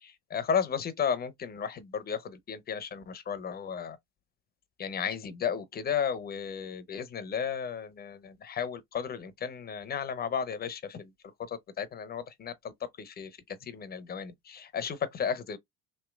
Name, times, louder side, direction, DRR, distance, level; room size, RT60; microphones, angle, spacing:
voice 1, 0.0-4.0 4.8-11.1 11.5-12.5 13.0-13.3 13.6-15.6, left 7 dB, 20° left, 0.4 m, -34 dB
3.1 x 2.8 x 2.3 m
hypercardioid pair, 75°, 47 cm